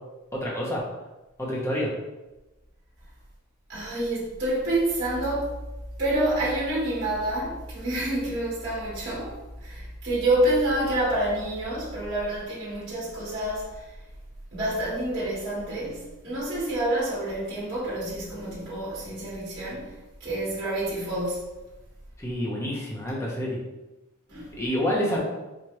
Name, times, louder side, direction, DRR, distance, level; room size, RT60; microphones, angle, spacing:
voice 1, 0.3-0.8 1.4-1.9 22.2-23.6 24.6-25.2, equal, 15° left, -4 dB, 0.8 m, -28 dB
voice 2, 3.7-5.5 6.0-9.3 9.6-13.8 14.5-19.9 20.2-21.4 24.3-24.5, right 1 dB, 50° right, -8 dB, 1.5 m, -28 dB
4.6 x 2.5 x 3.0 m, 1.1 s
head